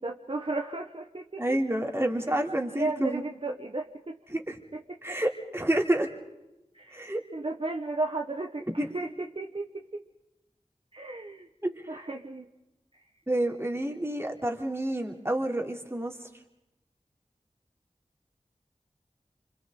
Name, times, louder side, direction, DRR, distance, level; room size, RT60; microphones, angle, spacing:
voice 1, 0.0-1.6 2.7-4.2 4.7-4.8 5.1-5.2 6.7-10.0 10.9-11.5 11.9-12.5, right 2 dB, 45° right, 2 dB, 1.4 m, -34 dB
voice 2, 1.4-3.2 4.3-4.6 5.0-6.1 6.9-7.2 8.7-8.9 11.6-11.7 13.3-16.1, right 1 dB, 20° right, 1 dB, 3.4 m, -28 dB
29.5 x 27.0 x 4.0 m, 0.94 s
wide cardioid pair, 65°, 13 cm